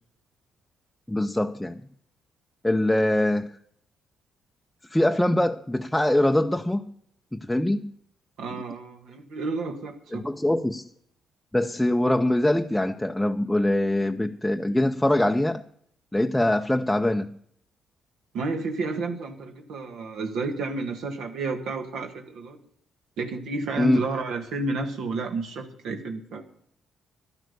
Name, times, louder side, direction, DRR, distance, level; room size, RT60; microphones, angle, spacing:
voice 1, 1.1-1.8 2.6-3.6 4.9-6.8 7.3-7.9 10.1-10.8 11.5-15.6 16.1-17.4 23.8-24.0, left 1 dB, 5° left, 0.5 m, -23 dB
voice 2, 8.4-10.2 18.3-22.6 23.2-26.4, right 3 dB, 80° right, 1.7 m, -31 dB
11.5 x 10.5 x 6.7 m
cardioid pair, 90°, 0 cm